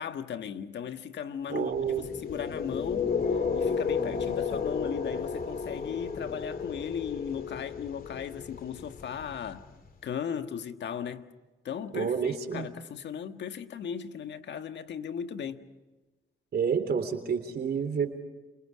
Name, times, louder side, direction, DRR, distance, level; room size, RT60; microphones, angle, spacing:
voice 1, 0.0-3.1 3.5-9.7 10.0-11.3 11.6-15.7, left 8 dB, 65° left, 1.6 m, -37 dB
voice 2, 1.5-2.1 11.9-12.7 16.5-18.1, right 6 dB, 55° right, 3.5 m, -29 dB
sound 1, 1.8-9.9, left 5 dB, 45° left, 2.6 m, -33 dB
29.5 x 28.5 x 4.9 m
cardioid pair, 90°, 20 cm